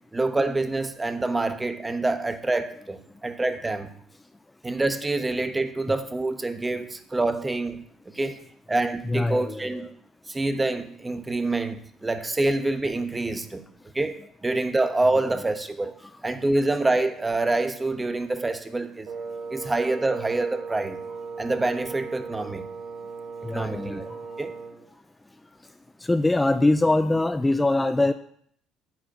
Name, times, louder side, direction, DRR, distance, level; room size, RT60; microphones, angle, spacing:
voice 1, 0.1-3.9 4.6-7.8 8.2-8.4 8.7-9.9 10.3-13.6 13.9-15.9 16.2-19.1 19.5-21.0 21.4-22.7 23.5-24.0 24.4-24.5, right 2 dB, 20° right, 9 dB, 1.1 m, -26 dB
voice 2, 9.0-9.9 16.0-16.2 23.4-24.4 26.0-28.1, left 2 dB, 15° left, 10 dB, 0.5 m, -23 dB
Wind instrument woodwind instrument, 19.1-24.8, right 4 dB, 60° right, 1.4 m, -37 dB
9.0 x 4.7 x 7.5 m, 0.66 s
hypercardioid pair, 55°, 0 cm